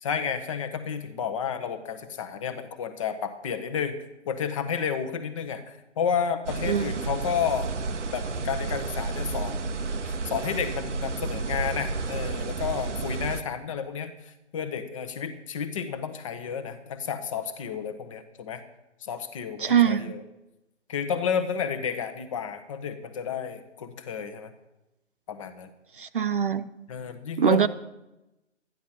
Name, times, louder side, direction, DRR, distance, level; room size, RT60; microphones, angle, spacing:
voice 1, 0.0-4.0 4.3-7.8 8.1-9.6 10.0-18.6 19.0-20.2 20.9-24.5 25.3-25.7 26.9-27.7, left 7 dB, 25° left, 10 dB, 0.9 m, -31 dB
sound 1, 6.5-13.4, right 3 dB, 75° right, 0.9 m, -31 dB
voice 2, 19.6-20.0 26.0-26.7 27.4-27.7, right 8 dB, 45° right, 13 dB, 0.5 m, -22 dB
12.5 x 10.5 x 5.8 m, 0.95 s
figure-of-eight pair, 140°, 36 cm